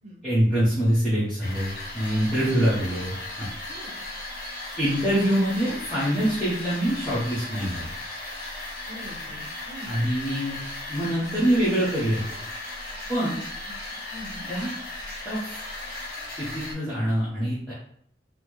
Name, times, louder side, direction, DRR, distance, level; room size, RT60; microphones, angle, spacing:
voice 1, 0.2-3.5 4.8-7.9 9.9-10.6 10.9-12.2 13.1-13.4 14.5-14.7 15.2-15.6 16.4-17.7, equal, 5° left, -12 dB, 0.9 m, -25 dB
sound 1, 1.4-16.7, left 2 dB, 50° left, 1.0 m, -36 dB
voice 2, 2.4-2.9 3.7-4.0 8.9-9.9 13.6-13.7 14.1-14.5, equal, 35° right, -4 dB, 1.0 m, -43 dB
4.0 x 2.0 x 3.0 m, 0.65 s
head